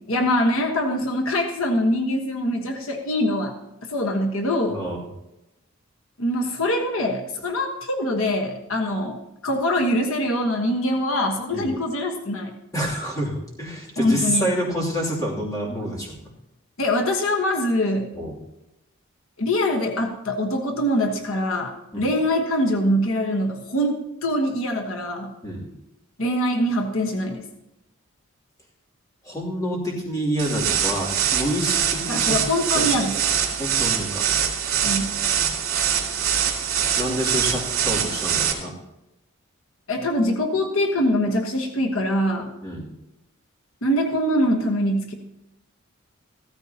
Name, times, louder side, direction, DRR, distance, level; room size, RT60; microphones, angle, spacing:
voice 1, 0.1-3.5 3.9-4.8 6.2-12.5 14.0-14.5 16.8-18.1 19.4-25.3 26.2-27.4 32.1-33.2 34.8-35.2 39.9-42.5 43.8-45.1, left 1 dB, 75° left, 2 dB, 1.3 m, -23 dB
voice 2, 12.7-16.1 18.1-18.3 21.9-22.1 25.4-25.7 29.2-32.4 32.7-33.1 33.6-34.3 36.5-38.7 42.6-42.9, equal, 15° left, -4 dB, 2.8 m, -28 dB
sound 1, 30.4-38.5, right 8 dB, 75° right, 2.6 m, -23 dB
15.5 x 13.5 x 2.9 m, 0.90 s
head